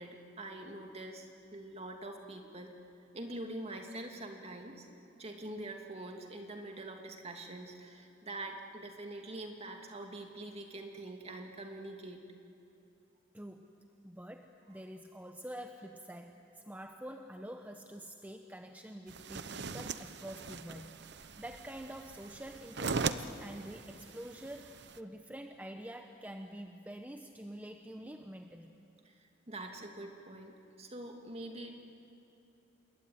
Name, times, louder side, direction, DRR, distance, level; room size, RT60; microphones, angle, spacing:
voice 1, 0.0-2.7 3.1-4.9 5.2-12.2 29.1-31.7, right 1 dB, 35° right, 3 dB, 2.5 m, -45 dB
voice 2, 13.3-13.7 14.0-28.7, equal, 10° right, 5 dB, 0.9 m, -47 dB
sound 1, 19.1-25.0, right 4 dB, 65° right, 0.9 m, -40 dB
27.0 x 22.0 x 9.6 m, 2.7 s
head